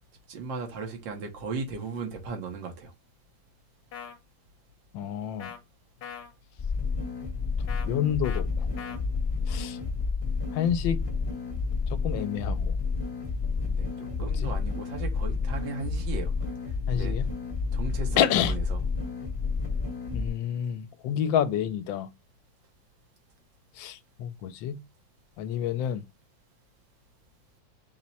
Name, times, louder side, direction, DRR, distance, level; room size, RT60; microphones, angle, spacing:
voice 1, 0.3-2.9 13.7-16.3 16.9-17.2 17.7-18.8, right 4 dB, 75° right, 1.7 m, -36 dB
sound 1, 3.9-4.2 5.4-5.6 6.0-6.3 7.7-7.9 8.2-8.4 8.8-9.0, left 7 dB, 65° left, 1.3 m, -40 dB
voice 2, 4.9-5.5 7.9-8.4 9.5-9.8 10.5-11.0 11.9-12.7 14.2-14.5 16.9-17.3 18.2-18.5 20.1-22.1 23.8-24.8 25.4-26.0, left 9 dB, 80° left, 1.3 m, -28 dB
sound 2, 6.6-20.3, left 4 dB, 20° left, 1.0 m, -30 dB
6.0 x 2.1 x 4.0 m
omnidirectional pair, 2.1 m